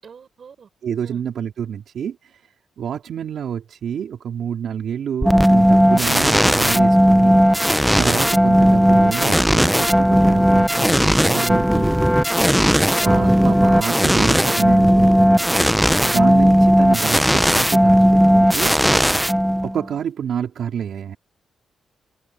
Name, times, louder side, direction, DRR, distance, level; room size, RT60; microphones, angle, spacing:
voice 1, 0.0-0.7 1.0-1.2 7.7-8.0 12.6-13.4 13.7-13.9, right 6 dB, 45° right, 6.1 m, -42 dB
voice 2, 0.8-2.4 2.8-7.6 8.0-12.0 12.8-18.7 19.6-21.2, right 8 dB, 65° right, 4.0 m, -28 dB
sound 1, 5.2-19.9, equal, ahead, 0.6 m, -16 dB
cardioid pair, 125°, 0 cm